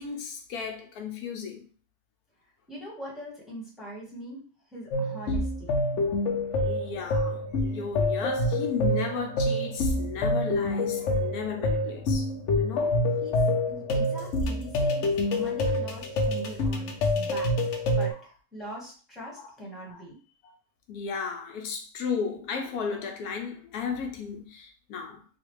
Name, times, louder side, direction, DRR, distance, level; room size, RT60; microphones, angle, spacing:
voice 1, 0.0-1.7 6.1-6.2 6.5-12.3 12.6-13.0 18.1-18.2 19.4-19.5 19.9-20.0 20.4-20.6 20.9-25.2, left 6 dB, 90° left, 1.2 m, -35 dB
voice 2, 2.7-4.4 4.7-5.7 13.2-13.4 13.7-17.5 17.9-20.1, right 1 dB, ahead, 1.0 m, -41 dB
sound 1, 4.9-18.1, left 1 dB, 65° left, 0.8 m, -27 dB
3.2 x 2.5 x 3.0 m
omnidirectional pair, 1.6 m